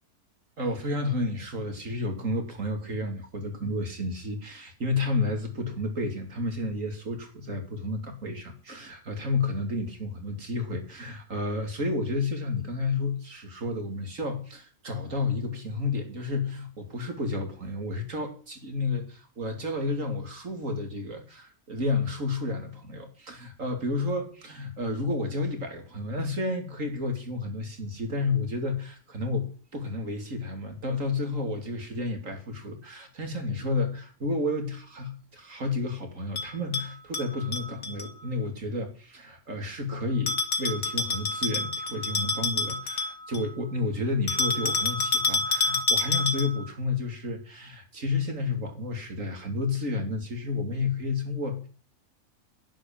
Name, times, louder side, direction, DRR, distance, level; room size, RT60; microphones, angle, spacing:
voice 1, 0.6-51.7, left 2 dB, 60° right, 4 dB, 3.3 m, -31 dB
Bell, 36.4-38.1 40.3-43.5 44.3-46.7, left 3 dB, 75° left, 2.4 m, -28 dB
11.0 x 10.5 x 7.3 m, 0.41 s
omnidirectional pair, 1.5 m